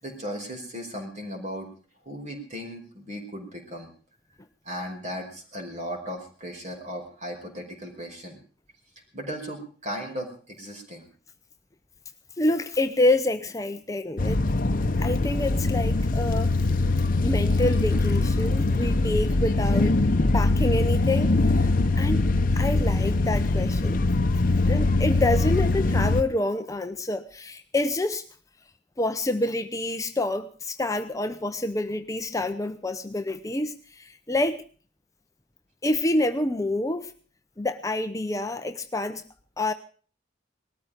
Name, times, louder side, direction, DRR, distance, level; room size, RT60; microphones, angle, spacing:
voice 1, 0.0-1.7 2.0-3.9 4.6-8.4 9.1-11.1, equal, 40° right, 3 dB, 4.9 m, -36 dB
voice 2, 12.4-14.4 14.9-16.5 17.2-20.0 20.3-22.2 22.5-24.0 24.7-28.2 29.0-34.6 35.8-37.1 37.6-39.2 39.6-39.7, left 2 dB, 20° left, 8 dB, 0.7 m, -27 dB
sound 1, 14.2-26.2, left 2 dB, 50° left, 0.9 m, -22 dB
19.5 x 13.5 x 5.1 m, 0.41 s
head